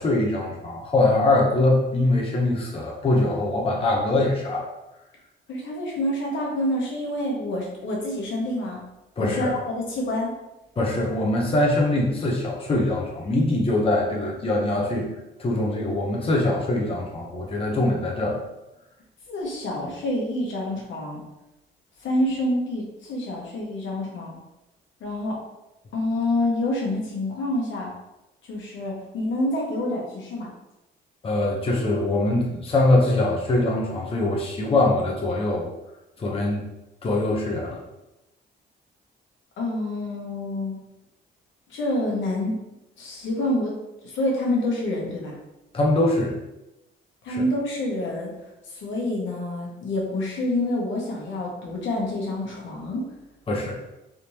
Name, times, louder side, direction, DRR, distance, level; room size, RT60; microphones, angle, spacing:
voice 1, 0.0-4.7 9.2-9.5 10.8-15.1 15.4-18.4 31.2-35.7 36.2-36.6 37.0-37.8 45.7-46.4 47.3-47.4 53.5-53.8, left 2 dB, 30° left, -2 dB, 0.7 m, -23 dB
voice 2, 5.5-8.8 9.2-10.3 19.3-21.2 22.0-24.3 25.0-25.4 25.9-27.9 28.5-30.5 39.6-40.8 41.7-42.5 43.0-43.7 44.1-45.3 47.2-48.3 48.7-53.0, left 1 dB, 75° left, -2 dB, 1.1 m, -27 dB
3.5 x 2.9 x 2.8 m, 0.94 s
cardioid pair, 90°, 20 cm